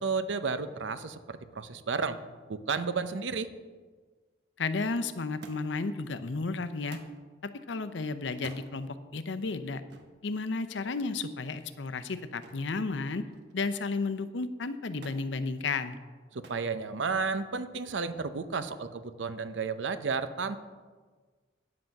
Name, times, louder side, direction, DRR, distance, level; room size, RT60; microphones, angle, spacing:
voice 1, 0.0-2.2 2.5-3.5 16.3-20.6, right 5 dB, 85° right, 11 dB, 0.7 m, -32 dB
voice 2, 4.6-7.0 7.7-9.8 10.2-13.2 13.5-16.0, left 3 dB, 80° left, 11 dB, 0.6 m, -33 dB
Thump thud, 5.4-5.9 6.9-7.2 8.3-8.7 9.9-10.2 12.4-12.7 13.1-13.7 15.0-15.3 16.4-16.7 17.6-18.1 19.1-19.2, right 3 dB, 65° right, 1.1 m, -51 dB
9.5 x 7.8 x 5.8 m, 1.4 s
head